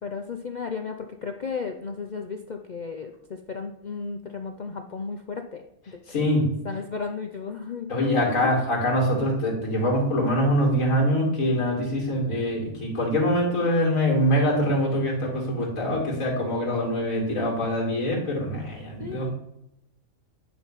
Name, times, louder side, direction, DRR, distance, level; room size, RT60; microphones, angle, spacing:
voice 1, 0.0-6.3 6.6-8.2 17.1-17.5 19.0-19.3, left 5 dB, 50° left, 5 dB, 0.5 m, -34 dB
voice 2, 6.1-6.5 7.9-19.3, equal, 75° left, -1 dB, 3.0 m, -24 dB
9.7 x 3.9 x 5.6 m, 0.86 s
omnidirectional pair, 1.4 m